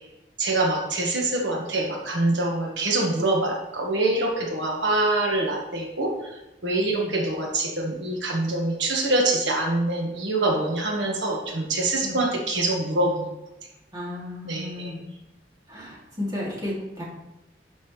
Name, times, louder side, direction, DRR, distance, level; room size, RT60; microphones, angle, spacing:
voice 1, 0.4-6.3 6.6-13.3 14.4-14.9, right 2 dB, 90° right, 0 dB, 1.5 m, -25 dB
voice 2, 13.9-15.0 15.7-17.0, left 1 dB, 20° right, -6 dB, 2.6 m, -33 dB
11.5 x 5.3 x 3.2 m, 0.97 s
head